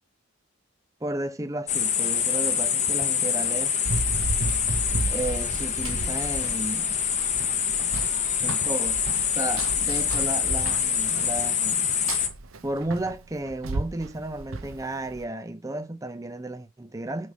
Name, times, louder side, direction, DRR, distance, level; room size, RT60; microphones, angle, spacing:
voice 1, 1.0-3.8 5.1-7.0 8.4-9.0 9.3-11.9 12.6-17.3, right 2 dB, 15° right, 0.6 m, -33 dB
sound 1, 1.7-12.3, left 8 dB, 35° left, 0.9 m, -26 dB
Run, 3.9-15.2, right 2 dB, 70° right, 0.8 m, -34 dB
6.5 x 3.5 x 5.2 m
head